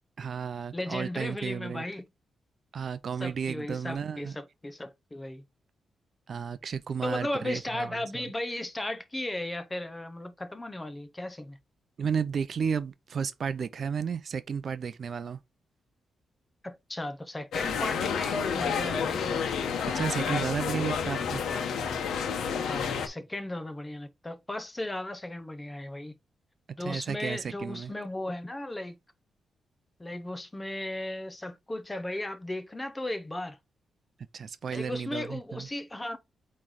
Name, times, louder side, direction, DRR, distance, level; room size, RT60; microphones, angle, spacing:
voice 1, 0.2-1.9 2.7-4.4 6.3-8.3 12.0-15.4 19.9-21.4 26.8-27.9 34.3-35.7, right 6 dB, 45° right, 0.5 m, -33 dB
voice 2, 0.7-2.0 3.2-5.4 7.0-11.6 16.6-19.4 22.6-26.1 26.8-29.0 30.0-33.6 34.7-36.2, left 1 dB, 15° left, 0.7 m, -36 dB
sound 1, 17.5-23.1, left 6 dB, 85° left, 1.2 m, -30 dB
8.5 x 3.2 x 3.7 m
wide cardioid pair, 150°, 0 cm